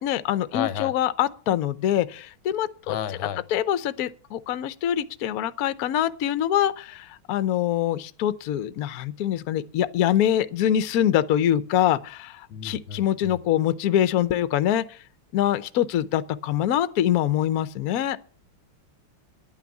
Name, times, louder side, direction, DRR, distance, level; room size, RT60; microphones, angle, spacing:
voice 1, 0.0-3.0 3.5-15.0 15.3-18.3, left 11 dB, 60° left, 1.0 m, -24 dB
voice 2, 0.5-0.9 2.8-3.4 12.5-13.4, left 9 dB, 85° left, 1.6 m, -32 dB
11.0 x 9.0 x 7.0 m
omnidirectional pair, 2.1 m